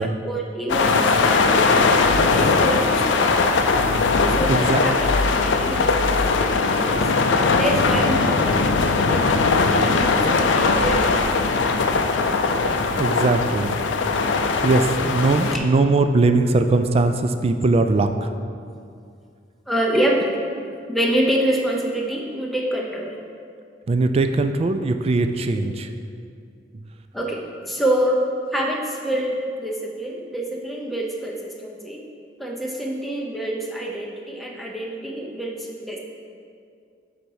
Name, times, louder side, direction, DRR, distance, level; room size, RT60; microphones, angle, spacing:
voice 1, 0.0-1.8 2.3-3.6 4.3-5.1 5.4-7.1 7.5-8.8 9.1-11.2 15.5-15.6 19.7-20.3 20.9-23.2 27.1-28.2 28.5-32.0 32.4-36.0, right 1 dB, ahead, -1 dB, 0.6 m, -26 dB
sound 1, 0.7-15.6, left 4 dB, 75° left, 0.4 m, -20 dB
voice 2, 4.5-4.8 13.0-13.8 14.6-18.3 23.9-25.9, right 3 dB, 35° right, 8 dB, 0.3 m, -20 dB
sound 2, 7.6-11.1 11.5-11.7, right 1 dB, 50° right, 0.9 m, -35 dB
6.5 x 4.0 x 4.7 m, 2.3 s
head